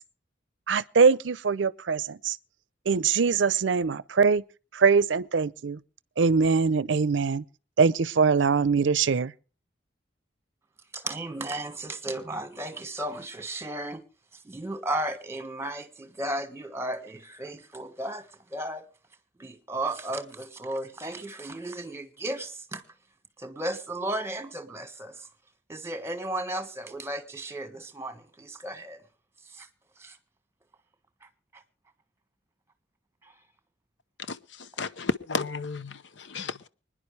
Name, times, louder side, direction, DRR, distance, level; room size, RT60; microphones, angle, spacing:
voice 1, 0.7-2.4 2.9-4.4 4.7-5.8 6.2-7.4 7.8-9.3, right 5 dB, 85° right, 0.6 m, -22 dB
voice 2, 10.9-14.0 14.4-18.8 19.4-22.8 23.4-25.3 25.7-29.0 29.5-29.7 30.0-30.2 31.2-31.3 31.5-31.6, right 1 dB, 15° right, 1.4 m, -34 dB
voice 3, 34.3-36.7, left 4 dB, 80° left, 0.8 m, -33 dB
25.0 x 10.5 x 3.2 m
head